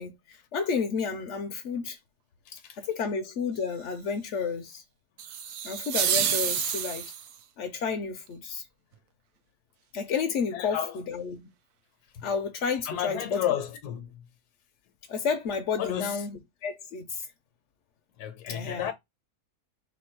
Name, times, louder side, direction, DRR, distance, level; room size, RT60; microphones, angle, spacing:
voice 1, 0.0-2.0 2.8-4.8 5.6-7.1 7.6-8.7 9.9-11.4 12.2-13.5 15.1-17.3 18.5-18.9, left 5 dB, 60° left, 0.8 m, -31 dB
sound 1, 5.2-7.4, right 9 dB, 70° right, 1.0 m, -28 dB
voice 2, 10.5-11.0 12.1-12.3 12.8-14.2 15.8-16.2 18.2-18.9, left 10 dB, 75° left, 1.3 m, -32 dB
4.1 x 2.3 x 4.4 m
omnidirectional pair, 1.7 m